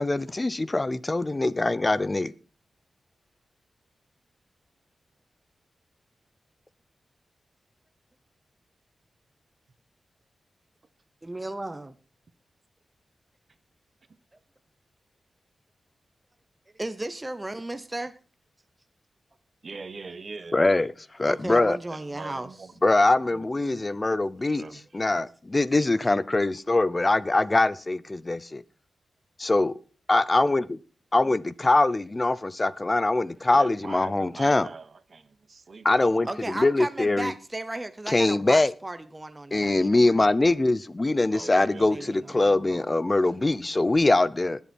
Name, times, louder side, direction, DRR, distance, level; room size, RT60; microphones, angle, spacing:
voice 1, 0.0-2.3 20.5-20.9 21.2-21.8 22.8-24.6 24.9-28.6 29.4-29.7 30.1-30.8 31.1-34.7 35.8-37.3 38.1-38.7 39.5-44.6, left 2 dB, 25° left, 0.7 m, -23 dB
voice 2, 11.2-11.9 16.7-18.1 21.3-22.7 36.2-40.3 41.8-42.8, right 2 dB, 15° right, 0.8 m, -35 dB
voice 3, 19.6-20.9 21.2-21.5 21.9-22.7 23.3-23.8 24.5-24.8 33.5-36.6 41.3-42.4, right 4 dB, 50° right, 1.2 m, -43 dB
20.0 x 7.2 x 4.5 m
wide cardioid pair, 105°, 0 cm